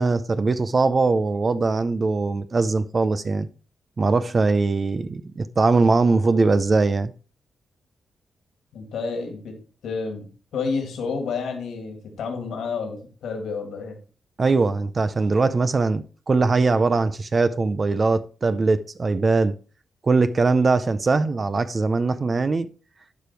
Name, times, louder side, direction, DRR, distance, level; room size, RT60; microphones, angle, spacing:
voice 1, 0.0-3.5 4.0-7.1 14.4-19.5 20.0-22.7, right 3 dB, 35° right, 0.5 m, -21 dB
voice 2, 8.7-9.6 9.8-10.3 10.5-14.0, left 5 dB, 85° left, 2.5 m, -30 dB
11.5 x 5.1 x 4.5 m
cardioid pair, 100°, 0 cm